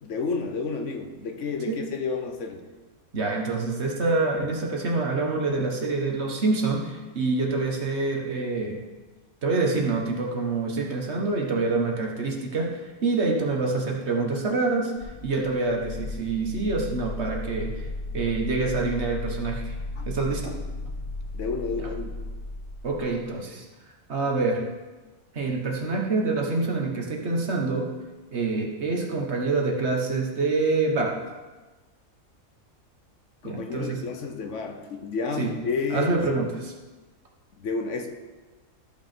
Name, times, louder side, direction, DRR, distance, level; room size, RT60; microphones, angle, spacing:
voice 1, 0.0-2.6 20.0-20.1 20.4-20.6 21.3-22.2 33.4-36.1 37.6-38.1, left 4 dB, 65° left, 4 dB, 1.1 m, -31 dB
voice 2, 3.1-8.8 9.4-14.9 15.2-17.9 18.1-19.7 20.1-20.5 22.8-23.6 24.1-24.6 25.3-27.9 28.3-31.2 33.4-34.0 35.4-35.5 35.9-36.7, right 3 dB, 55° right, 0 dB, 1.5 m, -26 dB
sound 1, 15.0-23.2, left 2 dB, 35° left, 2.5 m, -35 dB
13.5 x 5.9 x 4.4 m, 1.3 s
omnidirectional pair, 1.4 m